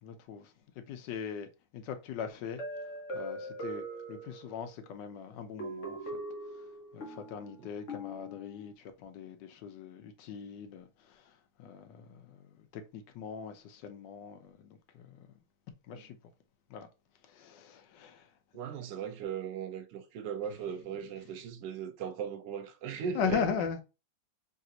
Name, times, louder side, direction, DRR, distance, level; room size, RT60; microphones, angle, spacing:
voice 1, 0.0-1.5 1.7-2.6 3.1-6.2 6.9-15.3 15.9-16.2 16.7-16.9 17.2-18.3 23.1-23.8, left 7 dB, 75° left, 1.3 m, -40 dB
sound 1, 2.6-4.8 5.6-8.7, right 1 dB, 50° left, 1.1 m, -41 dB
voice 2, 18.5-23.4, right 7 dB, 80° right, 1.3 m, -38 dB
3.4 x 2.4 x 2.8 m
omnidirectional pair, 1.9 m